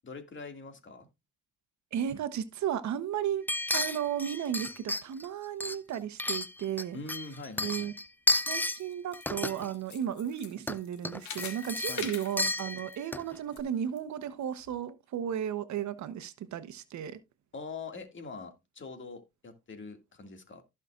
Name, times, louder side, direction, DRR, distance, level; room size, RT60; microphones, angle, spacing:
voice 1, 0.0-1.1 6.9-7.9 11.9-12.1 17.5-20.6, left 3 dB, 40° left, 2.2 m, -43 dB
voice 2, 1.9-3.5 3.7-7.0 7.6-7.9 8.5-17.2, right 9 dB, 70° right, 1.0 m, -34 dB
sound 1, 3.5-5.3 5.6-6.8 7.1-8.8 9.1-9.7 10.6-10.8 11.0-13.3 13.6-13.7, left 2 dB, 5° left, 0.5 m, -32 dB
sound 2, 8.6-13.6 14.0-14.1 14.7-14.8, left 7 dB, 70° left, 2.0 m, -44 dB
15.0 x 5.8 x 2.5 m
cardioid pair, 90°, 30 cm